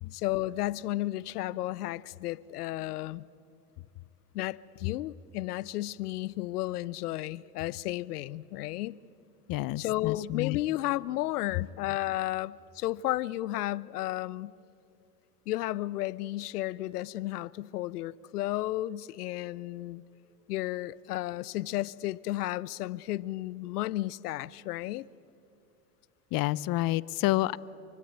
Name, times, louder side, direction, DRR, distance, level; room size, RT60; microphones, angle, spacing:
voice 1, 0.1-3.3 4.3-9.0 9.8-14.5 15.5-20.0 20.5-25.1, left 16 dB, 80° left, 0.7 m, -33 dB
voice 2, 9.5-10.6 26.3-27.6, left 18 dB, 50° left, 0.8 m, -29 dB
27.0 x 24.0 x 8.8 m
hypercardioid pair, 80°, 45 cm